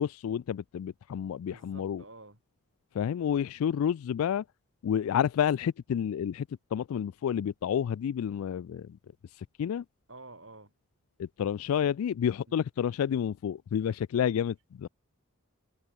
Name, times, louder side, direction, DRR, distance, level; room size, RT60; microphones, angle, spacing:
voice 1, 0.0-2.0 2.9-4.4 4.8-6.5 6.7-9.0 9.3-9.8 11.2-14.9, left 8 dB, 85° left, 0.3 m, -30 dB
voice 2, 1.3-2.4 10.1-10.7 12.5-12.6, right 2 dB, 65° right, 6.3 m, -50 dB
head